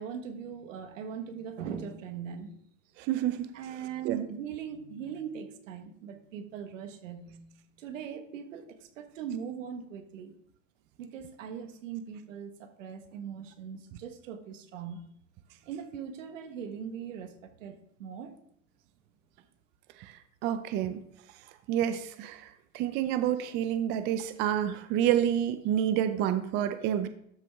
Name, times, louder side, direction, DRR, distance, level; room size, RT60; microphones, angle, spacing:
voice 1, 0.0-2.5 3.5-7.5 7.8-10.3 11.0-15.0 15.6-18.4, right 7 dB, 75° right, 8 dB, 1.4 m, -40 dB
voice 2, 3.0-3.5 4.0-4.3 20.0-20.1 20.4-21.0 21.7-22.5 22.7-27.1, right 10 dB, 30° right, 10 dB, 0.4 m, -28 dB
12.5 x 5.7 x 3.5 m, 0.70 s
supercardioid pair, 135°, 39 cm